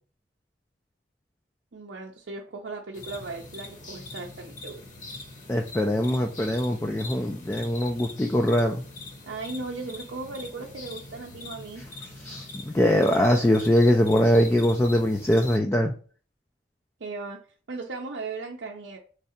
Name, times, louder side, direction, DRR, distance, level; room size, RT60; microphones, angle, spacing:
voice 1, 1.7-4.8 9.2-11.8 17.0-17.4 17.7-19.0, right 3 dB, 75° right, -1 dB, 0.6 m, -37 dB
sound 1, 2.9-15.6, left 2 dB, 45° left, 1.1 m, -42 dB
voice 2, 5.5-8.8 12.2-15.9, left 1 dB, 15° left, 3 dB, 0.3 m, -22 dB
3.7 x 3.3 x 4.2 m, 0.40 s
head